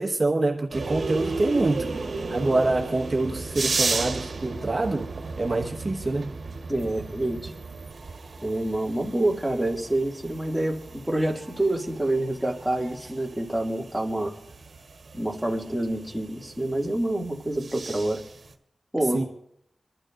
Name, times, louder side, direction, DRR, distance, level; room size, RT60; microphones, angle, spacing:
voice 1, 0.0-1.9 2.3-5.1 5.4-6.3 19.1-19.2, right 2 dB, 40° right, 1.4 m, -25 dB
sound 1, 0.7-18.5, right 3 dB, 75° right, 1.4 m, -35 dB
voice 2, 6.7-7.5 8.4-14.3 15.1-18.2 18.9-19.3, right 1 dB, ahead, 2.4 m, -27 dB
26.5 x 12.0 x 2.6 m
wide cardioid pair, 80°, 0 cm